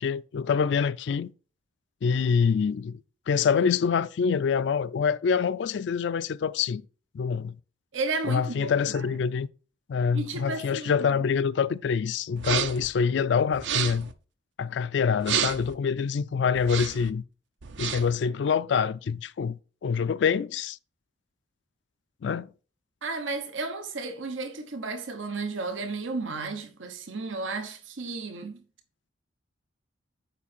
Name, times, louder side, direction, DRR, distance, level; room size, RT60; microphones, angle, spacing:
voice 1, 0.0-1.3 2.0-3.0 3.3-6.8 7.1-7.6 8.3-9.5 9.9-14.1 14.6-17.2 17.8-20.8 22.2-22.5, left 6 dB, 65° left, 0.3 m, -26 dB
voice 2, 7.9-9.2 10.1-11.1 23.0-28.6, right 3 dB, 90° right, 1.0 m, -33 dB
sound 1, 12.4-12.9 13.5-14.1 15.2-15.7 16.6-17.1 17.6-18.2, right 8 dB, 70° right, 0.7 m, -30 dB
7.1 x 5.2 x 4.3 m
head